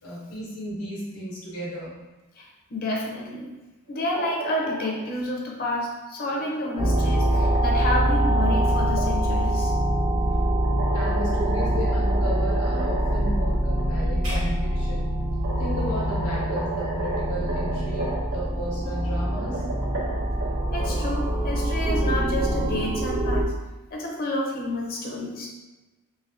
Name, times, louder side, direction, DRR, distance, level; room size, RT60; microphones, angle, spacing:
voice 1, 0.0-2.0 10.9-15.1 15.6-19.6, equal, 90° left, -6 dB, 1.1 m, -34 dB
voice 2, 2.4-3.5 3.9-9.7 20.7-23.5 23.9-25.5, left 1 dB, 45° left, -1 dB, 0.6 m, -29 dB
sound 1, 3.9-5.0 6.2-9.0 10.6-13.4 13.8-13.9 14.9-15.0 15.4-18.4 19.2-20.9, right 2 dB, 85° right, 1.0 m, -34 dB
sound 2, 6.8-23.4, right 1 dB, 25° right, 0.5 m, -24 dB
sound 3, 14.2-16.5, equal, 60° right, 1.5 m, -38 dB
3.3 x 3.1 x 2.6 m, 1.1 s
head